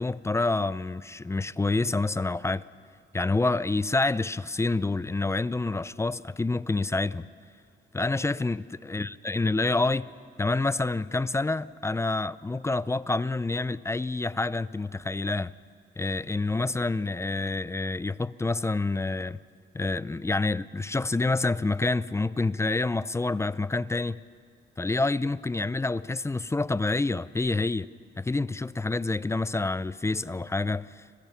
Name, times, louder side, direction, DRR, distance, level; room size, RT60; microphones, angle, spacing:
voice 1, 0.0-2.6 3.1-7.3 7.9-10.1 10.4-15.5 16.0-19.4 19.7-24.2 24.8-27.9 28.2-31.0, left 3 dB, 15° left, 0.5 m, -27 dB
29.0 x 21.0 x 5.7 m
cardioid pair, 90°, 20 cm